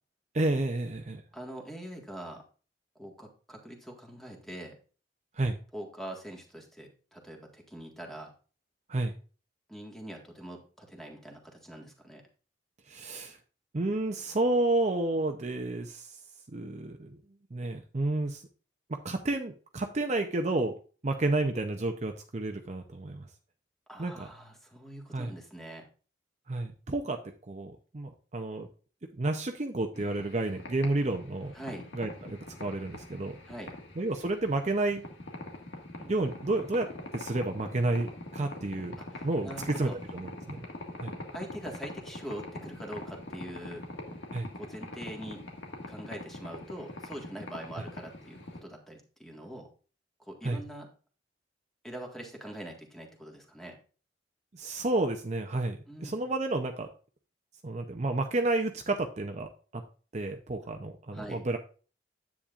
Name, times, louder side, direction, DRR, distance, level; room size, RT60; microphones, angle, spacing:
voice 1, 0.3-1.2 5.3-5.6 8.9-9.1 12.9-13.4 13.7-16.2 16.5-17.2 17.5-18.4 18.9-20.8 21.0-23.3 24.0-24.3 25.1-25.3 26.5-28.7 29.1-31.5 31.9-33.4 34.0-35.0 36.1-38.9 39.2-40.7 41.0-41.1 44.3-44.5 50.4-50.6 54.5-56.9 57.6-59.8 60.1-61.6, right 2 dB, 40° right, 5 dB, 0.7 m, -31 dB
voice 2, 1.3-2.4 3.0-4.8 5.7-8.3 9.7-12.2 23.9-25.8 31.5-31.9 33.5-33.7 36.0-36.1 39.0-40.0 41.3-43.8 44.5-45.4 45.9-49.7 50.2-50.9 51.8-53.8 55.9-56.1 61.1-61.4, right 1 dB, ahead, 1 dB, 1.7 m, -43 dB
old coffee machine, 30.0-48.6, left 2 dB, 85° left, 1.9 m, -43 dB
10.0 x 8.5 x 2.5 m, 0.37 s
head